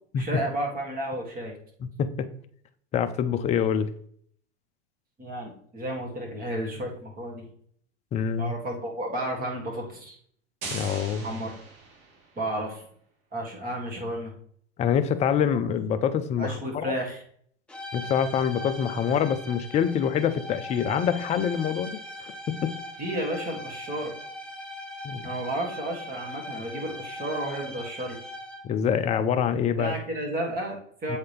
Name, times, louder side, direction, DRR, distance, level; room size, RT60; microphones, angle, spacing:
voice 1, 0.2-1.6 5.2-7.5 8.4-10.2 11.2-11.5 12.4-12.8 13.3-14.3 16.4-17.2 23.0-24.1 25.2-28.2 29.8-31.2, right 1 dB, 25° right, -1 dB, 2.0 m, -32 dB
voice 2, 2.9-3.9 8.1-8.5 10.7-11.3 14.8-16.9 17.9-22.3 22.6-22.7 25.0-25.3 28.6-29.9 31.1-31.2, left 8 dB, 20° left, 10 dB, 0.4 m, -25 dB
sound 1, 10.6-12.4, right 3 dB, 55° right, 1.9 m, -39 dB
sound 2, 17.7-28.8, left 1 dB, 5° left, 0.9 m, -40 dB
7.7 x 4.0 x 3.4 m, 0.62 s
hypercardioid pair, 100°, 35 cm